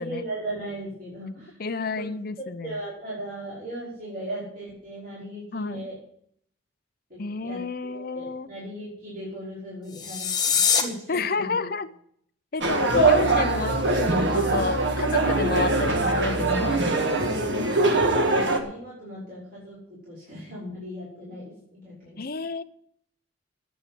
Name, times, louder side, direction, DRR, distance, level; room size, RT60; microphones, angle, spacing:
voice 1, 0.0-1.6 2.0-2.1 2.6-6.0 7.1-7.6 7.9-11.7 17.7-19.8 20.0-22.3, right 1 dB, 45° right, -8 dB, 5.5 m, -37 dB
voice 2, 1.6-2.8 5.5-5.9 7.2-8.5 11.1-11.9 12.5-16.8 22.2-22.6, left 4 dB, 50° left, 11 dB, 0.7 m, -30 dB
sound 1, 9.9-10.8, left 7 dB, 20° left, 1.4 m, -23 dB
sound 2, 12.6-18.6, right 2 dB, 60° right, 1.7 m, -22 dB
9.5 x 9.4 x 7.8 m, 0.66 s
head